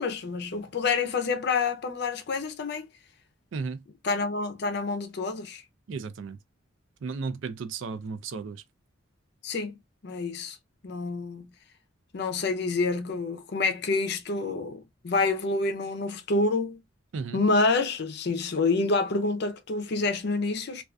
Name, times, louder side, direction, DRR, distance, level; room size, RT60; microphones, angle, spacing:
voice 1, 0.0-2.9 4.0-5.6 9.4-9.8 10.0-10.6 10.8-11.5 12.1-16.8 17.3-20.8, left 3 dB, 55° left, 0.5 m, -27 dB
voice 2, 3.5-3.8 5.9-6.4 7.0-8.6 17.1-17.4, right 4 dB, 70° right, 0.4 m, -34 dB
2.5 x 2.3 x 2.2 m
head